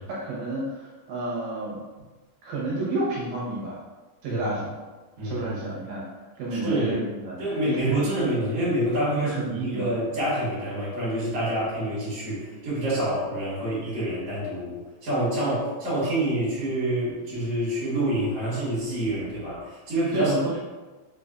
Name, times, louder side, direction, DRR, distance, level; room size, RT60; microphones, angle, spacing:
voice 1, 0.0-1.8 2.4-3.8 4.2-4.8 5.2-8.0 9.1-9.9 20.1-20.6, right 2 dB, 75° right, -6 dB, 2.2 m, -30 dB
voice 2, 5.2-5.5 6.6-7.0 7.4-20.3, right 1 dB, 55° right, -11 dB, 2.0 m, -27 dB
5.4 x 2.5 x 2.2 m, 1.2 s
omnidirectional pair, 4.1 m